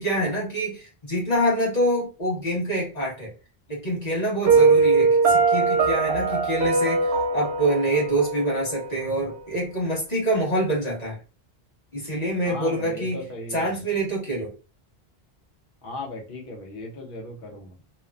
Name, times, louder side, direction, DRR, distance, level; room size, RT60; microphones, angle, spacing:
voice 1, 0.0-3.3 3.7-11.2 11.9-13.2 13.5-14.5, right 1 dB, 40° left, -4 dB, 1.3 m, -26 dB
voice 2, 4.5-4.8 12.4-13.7 15.8-17.7, left 2 dB, 60° left, 1 dB, 0.9 m, -37 dB
Piano, 4.5-9.4, right 4 dB, 85° right, 0.8 m, -21 dB
2.9 x 2.1 x 2.3 m, 0.34 s
omnidirectional pair, 1.0 m